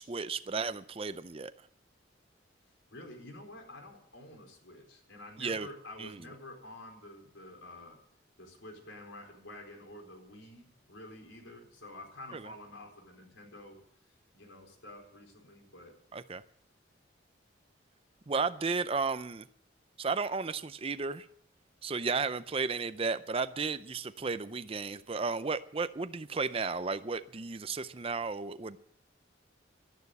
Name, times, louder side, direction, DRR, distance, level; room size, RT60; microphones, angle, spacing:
voice 1, 0.0-1.5 5.4-5.7 6.0-6.1 12.3-12.5 16.1-16.4 18.3-19.5 20.0-21.3 21.8-28.8, right 4 dB, 30° right, 13 dB, 0.5 m, -33 dB
voice 2, 2.9-8.0 8.4-13.8 14.3-16.0, left 1 dB, 85° left, 1 dB, 4.3 m, -49 dB
12.0 x 11.0 x 8.2 m, 0.67 s
head